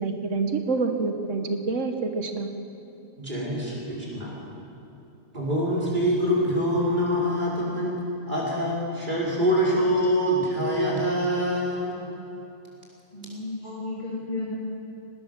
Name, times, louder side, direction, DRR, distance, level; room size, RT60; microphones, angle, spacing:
voice 1, 0.0-2.5, right 3 dB, 75° right, 6 dB, 1.6 m, -27 dB
voice 2, 3.2-4.4 5.3-8.0 8.3-12.0 13.6-13.8, equal, 40° right, -5 dB, 5.4 m, -25 dB
voice 3, 13.1-14.6, left 2 dB, 35° left, -7 dB, 3.2 m, -33 dB
19.5 x 18.5 x 7.5 m, 2.8 s
omnidirectional pair, 1.3 m